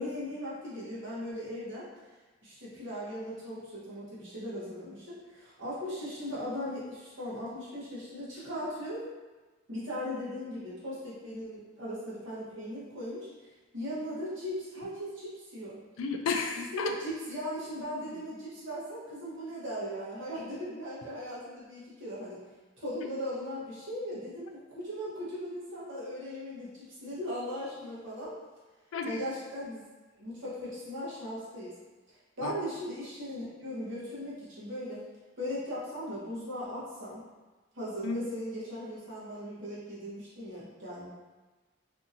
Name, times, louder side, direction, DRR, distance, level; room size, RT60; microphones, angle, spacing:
voice 1, 0.0-1.9 2.4-9.0 9.7-13.3 13.7-15.8 16.5-22.4 22.8-28.3 29.0-29.8 30.2-31.7 32.4-35.0 35.4-37.2 37.7-41.1, equal, 65° right, -8 dB, 1.0 m, -38 dB
voice 2, 16.0-16.9 28.9-29.2 32.4-32.5 38.0-38.2, left 5 dB, 85° left, 5 dB, 0.3 m, -32 dB
2.8 x 2.5 x 2.6 m, 1.2 s
head